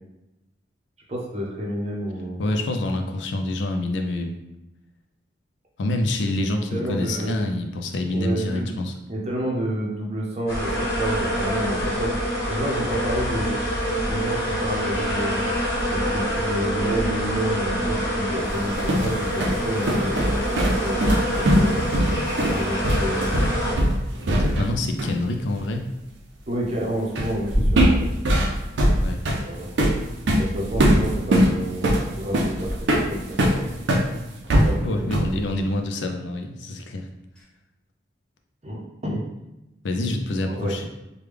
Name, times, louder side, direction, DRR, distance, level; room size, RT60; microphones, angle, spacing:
voice 1, 1.1-2.4 6.7-7.6 8.1-8.7 9.1-12.1 12.5-13.6 14.0-15.4 15.9-21.8 22.4-23.8 26.5-28.1 29.4-29.8 30.4-33.7 34.6-35.1 38.6-39.2 40.5-40.7, right 1 dB, 35° right, -2 dB, 0.6 m, -29 dB
voice 2, 2.4-4.3 5.8-9.0 24.4-25.8 29.0-29.2 34.8-37.1 39.8-40.9, left 1 dB, 80° left, 4 dB, 0.4 m, -26 dB
sound 1, 10.5-23.7, equal, 60° left, 1.3 m, -26 dB
sound 2, 18.5-24.7 25.0-25.2 27.2-27.4 27.8-34.1 34.5-35.4, equal, 80° right, 0.5 m, -21 dB
sound 3, 27.5-28.1 28.8-29.3 30.7-31.4 32.6-33.1 34.5-35.0 37.4-37.5, equal, 5° left, 0.9 m, -27 dB
3.3 x 2.2 x 3.3 m, 0.98 s
head